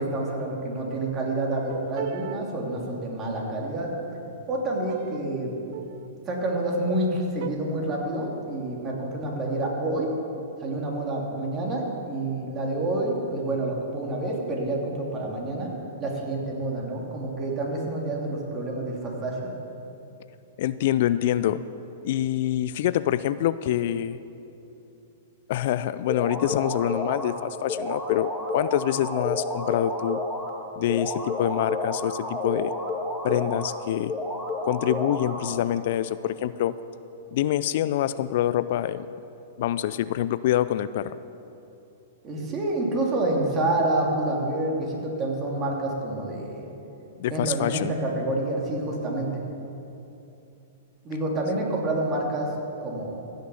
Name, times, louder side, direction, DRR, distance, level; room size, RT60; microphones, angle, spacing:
voice 1, 0.0-3.9 4.5-5.5 6.3-10.1 10.6-15.7 16.0-19.5 42.2-46.7 47.3-49.4 51.0-52.5 52.8-53.3, right 2 dB, 25° right, -2 dB, 2.8 m, -28 dB
sound 1, 1.5-2.4 4.9-5.3 5.6-6.2 7.4-7.5, right 11 dB, 55° right, 0.4 m, -36 dB
voice 2, 20.6-21.6 22.0-24.2 25.5-30.2 30.8-32.7 33.2-34.1 34.6-36.7 37.3-39.1 39.6-41.1 47.2-47.9, left 12 dB, 60° left, 15 dB, 0.4 m, -26 dB
sound 2, 26.1-27.3 27.7-30.5 30.9-33.7 34.1-35.7, left 1 dB, 5° left, 2.1 m, -30 dB
15.5 x 6.6 x 7.0 m, 2.8 s
hypercardioid pair, 125°, 0 cm